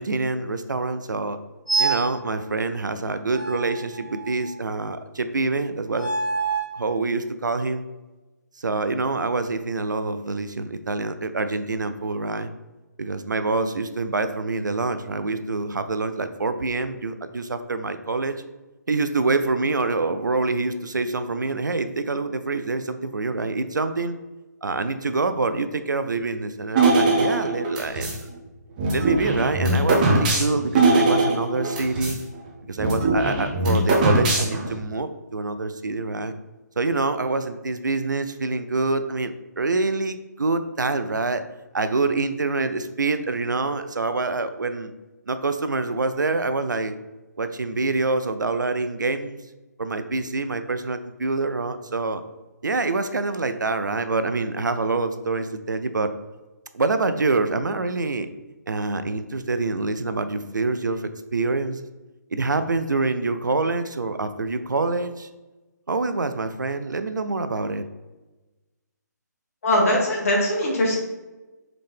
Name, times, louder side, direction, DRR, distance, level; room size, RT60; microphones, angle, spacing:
voice 1, 0.0-1.4 1.8-6.1 6.7-7.8 8.6-12.5 13.0-18.4 18.9-24.2 24.6-28.1 28.9-32.2 32.7-36.3 36.8-41.4 41.7-44.9 45.3-47.0 47.4-49.4 49.8-52.2 52.6-56.1 56.7-58.3 58.7-61.8 62.3-65.3 65.9-67.8, right 3 dB, 80° right, 11 dB, 0.4 m, -26 dB
sound 1, 1.7-2.2 3.3-4.6 5.9-6.8, right 4 dB, 5° left, 1.1 m, -26 dB
sound 2, 26.8-28.2 28.8-32.2 32.5-32.6 32.8-34.8, right 3 dB, 25° right, 0.7 m, -21 dB
voice 2, 69.6-71.0, left 1 dB, 50° left, -2 dB, 1.4 m, -21 dB
3.7 x 3.4 x 3.3 m, 1.1 s
figure-of-eight pair, 140°, 10 cm